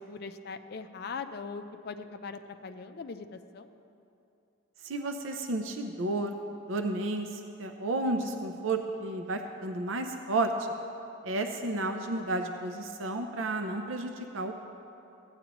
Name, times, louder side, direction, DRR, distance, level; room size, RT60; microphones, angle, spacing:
voice 1, 0.0-3.7, left 4 dB, 50° left, 8 dB, 0.4 m, -41 dB
voice 2, 4.8-6.4 6.7-10.5 11.2-14.6, right 2 dB, 70° right, 5 dB, 0.5 m, -32 dB
15.0 x 9.6 x 3.0 m, 2.8 s
head